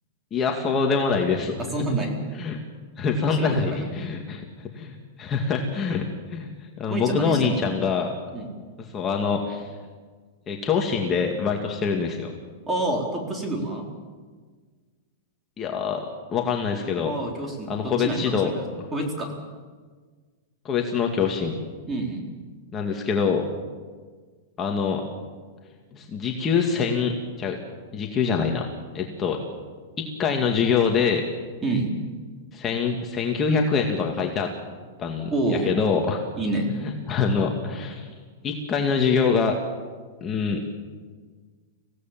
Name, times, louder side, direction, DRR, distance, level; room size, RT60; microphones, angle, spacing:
voice 1, 0.3-1.5 2.4-2.6 3.0-6.5 6.8-8.1 8.9-9.7 10.5-12.3 15.6-16.1 16.3-17.1 17.7-18.5 20.6-21.5 22.7-23.5 24.6-25.1 25.9-27.1 27.4-27.6 27.9-28.6 28.9-29.4 30.0-31.2 32.5-34.5 35.0-36.2 36.8-38.1 38.4-39.5 40.2-40.6, left 5 dB, 20° left, 1 dB, 2.2 m, -24 dB
voice 2, 1.6-2.2 3.4-3.8 6.9-7.6 8.3-8.5 12.7-13.9 17.0-18.6 18.9-19.3 21.9-22.2 31.6-31.9 35.3-35.7 36.4-36.7, right 2 dB, 15° right, 1 dB, 4.2 m, -27 dB
26.0 x 17.0 x 7.6 m, 1.5 s
supercardioid pair, 150°, 0 cm